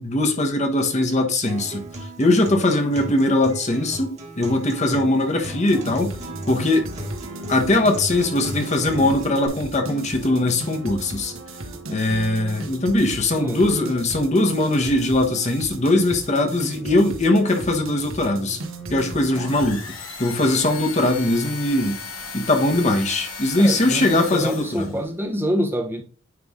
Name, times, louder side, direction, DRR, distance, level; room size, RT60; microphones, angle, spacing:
voice 1, 0.0-1.8 2.2-6.1 6.5-6.9 7.5-11.3 11.9-18.6 18.9-19.8 20.2-22.0 22.3-25.0, left 2 dB, 35° left, 1.1 m, -21 dB
Acoustic guitar, 1.5-9.5, right 1 dB, 35° right, 1.7 m, -37 dB
sound 1, 5.7-19.7, right 1 dB, 80° right, 1.2 m, -36 dB
sound 2, 19.3-25.1, left 4 dB, 80° left, 2.4 m, -36 dB
voice 2, 23.6-26.0, equal, 10° right, 0.9 m, -26 dB
9.4 x 3.4 x 3.6 m
head